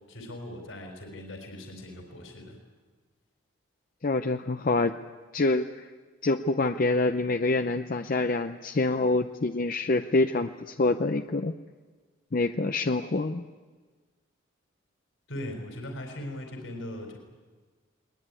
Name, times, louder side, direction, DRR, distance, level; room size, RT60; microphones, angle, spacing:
voice 1, 0.1-2.6 15.3-17.2, left 1 dB, 65° left, 4 dB, 4.2 m, -39 dB
voice 2, 4.0-5.0 5.3-5.9 6.2-11.5 12.3-13.4, left 2 dB, 45° left, 8 dB, 0.6 m, -26 dB
20.5 x 20.0 x 9.7 m, 1.4 s
head